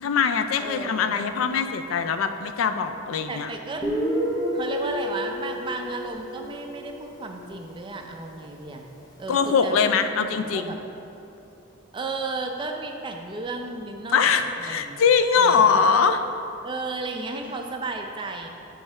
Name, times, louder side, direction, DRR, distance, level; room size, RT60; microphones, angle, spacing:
voice 1, 0.0-3.5 9.3-10.7 14.1-16.3, left 6 dB, 80° left, 9 dB, 0.4 m, -22 dB
voice 2, 0.6-1.3 3.3-3.8 4.5-8.9 9.2-9.8 10.3-10.8 11.9-15.0 15.4-15.9 16.6-18.5, right 3 dB, 25° right, 3 dB, 0.4 m, -34 dB
Guitar, 3.8-7.3, equal, 20° left, 0.8 m, -29 dB
7.7 x 3.2 x 4.7 m, 2.8 s
head